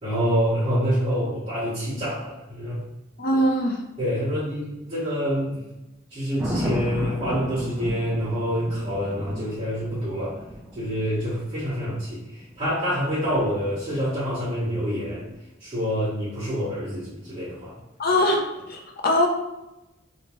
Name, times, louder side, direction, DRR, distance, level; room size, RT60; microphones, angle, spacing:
voice 1, 0.0-2.8 4.0-5.6 6.1-10.4 10.7-15.2 15.6-17.8, equal, 25° right, -13 dB, 1.3 m, -27 dB
voice 2, 3.2-3.8 18.0-18.4 18.7-19.3, left 1 dB, 50° left, 1 dB, 0.5 m, -21 dB
Thunder, 6.4-14.4 17.2-17.5, equal, 10° right, 0.4 m, -35 dB
3.1 x 3.0 x 2.9 m, 0.96 s
head